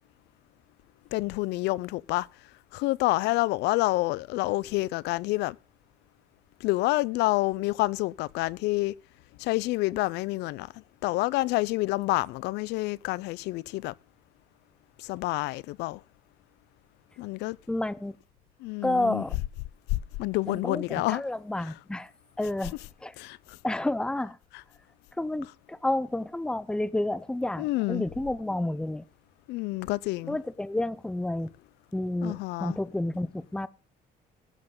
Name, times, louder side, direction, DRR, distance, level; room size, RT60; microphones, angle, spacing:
voice 1, 1.1-2.3 2.7-5.6 6.6-8.9 9.4-10.7 11.0-13.9 15.0-16.0 17.2-17.6 18.6-19.2 19.9-21.2 21.6-21.7 23.2-23.6 27.6-28.1 29.5-30.4 32.2-32.8, left 19 dB, 85° left, 0.5 m, -28 dB
voice 2, 17.7-18.1 18.8-19.4 20.5-22.1 22.4-22.7 23.0-23.1 23.6-24.4 25.2-29.0 30.3-31.5 31.9-33.7, left 1 dB, 5° left, 0.6 m, -30 dB
15.5 x 7.7 x 3.7 m
cardioid pair, 110°, 17 cm